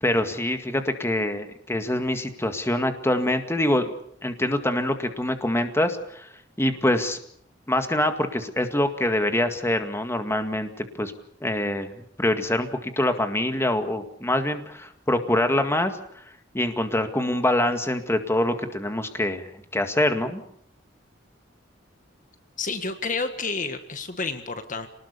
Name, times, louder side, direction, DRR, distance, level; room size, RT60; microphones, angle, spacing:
voice 1, 0.0-3.9 4.2-6.3 6.6-7.2 7.7-11.1 11.4-11.9 12.2-16.2 16.5-20.4, left 1 dB, 15° left, 7 dB, 2.0 m, -25 dB
voice 2, 22.6-24.9, left 4 dB, 45° left, 9 dB, 1.7 m, -30 dB
27.5 x 19.5 x 6.9 m, 0.65 s
head